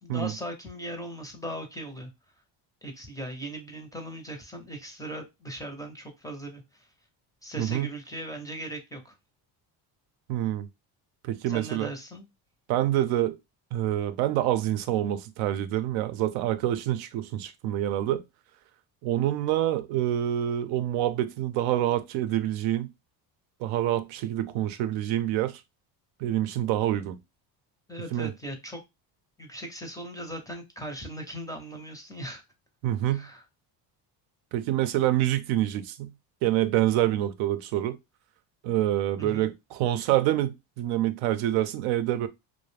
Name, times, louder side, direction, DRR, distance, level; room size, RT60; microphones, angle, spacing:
voice 1, 0.0-2.1 2.8-6.9 7.4-9.1 11.5-12.3 27.9-28.8 29.4-32.4 33.0-33.4 39.2-39.5, right 1 dB, 10° left, 0.4 m, -38 dB
voice 2, 7.6-7.9 10.3-10.7 11.2-11.9 12.7-13.4 13.7-18.2 19.0-22.9 23.6-25.6 26.2-27.2 28.1-28.3 32.8-33.3 34.5-36.1 36.4-38.0 38.6-42.3, right 13 dB, 90° right, 0.5 m, -26 dB
2.4 x 2.1 x 3.2 m
cardioid pair, 125°, 46 cm